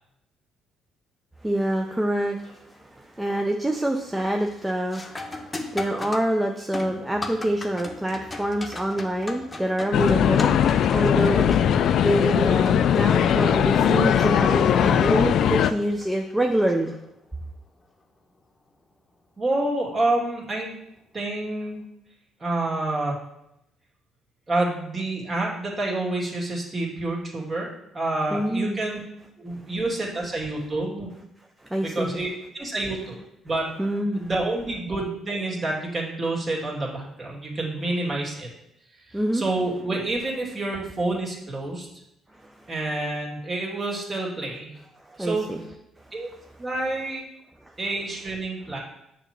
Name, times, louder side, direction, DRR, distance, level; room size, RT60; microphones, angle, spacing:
voice 1, 1.4-11.6 12.0-16.9 28.3-28.8 31.6-32.2 33.8-34.3 39.1-39.4 42.3-42.7 45.1-45.6 46.0-46.1 47.7-47.8, right 1 dB, 10° right, 2 dB, 0.6 m, -26 dB
sound 1, 2.4-2.8 3.2-3.6 3.9-17.5 20.0-20.1 20.9-21.1, left 2 dB, 20° left, 1.0 m, -39 dB
sound 2, 9.9-15.7, left 9 dB, 65° left, 0.3 m, -20 dB
voice 2, 19.4-20.7 21.1-21.8 22.4-23.1 24.5-29.0 29.4-31.1 31.8-33.2 33.4-33.7 34.2-38.5 39.1-41.9 42.7-44.7 45.2-45.5 46.1-46.3 46.6-47.2 47.8-48.8, right 2 dB, 30° right, -3 dB, 2.4 m, -28 dB
6.6 x 3.1 x 5.9 m, 0.81 s
supercardioid pair, 70°, 0 cm